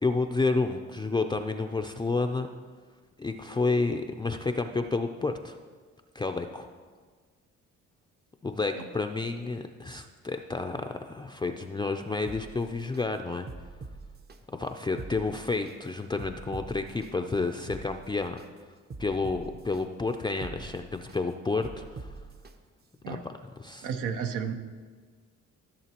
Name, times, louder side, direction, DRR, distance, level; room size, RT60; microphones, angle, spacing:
voice 1, 0.0-2.5 3.2-5.6 6.1-6.7 8.4-13.5 14.6-18.4 19.0-22.1 23.1-23.3 23.6-23.9, left 3 dB, 15° left, 5 dB, 0.4 m, -30 dB
sound 1, 12.3-13.0 13.5-14.4 14.8-15.7 16.2-17.1 17.5-18.5 18.9-19.8 20.3-21.2 21.6-22.5 23.0-23.1, right 3 dB, 35° right, 0.6 m, -43 dB
voice 2, 23.8-24.5, right 7 dB, 85° right, 7 dB, 0.8 m, -32 dB
14.0 x 6.8 x 2.9 m, 1.5 s
cardioid pair, 90°, 30 cm